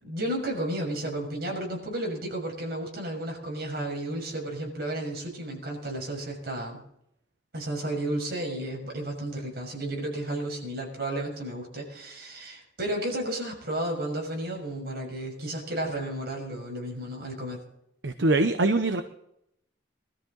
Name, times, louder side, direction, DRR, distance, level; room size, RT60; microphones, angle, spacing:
voice 1, 0.0-6.8 7.5-17.6, right 1 dB, 55° right, 0 dB, 6.5 m, -33 dB
voice 2, 18.0-19.0, right 2 dB, 75° right, 8 dB, 0.9 m, -23 dB
22.0 x 13.5 x 4.0 m, 0.77 s
head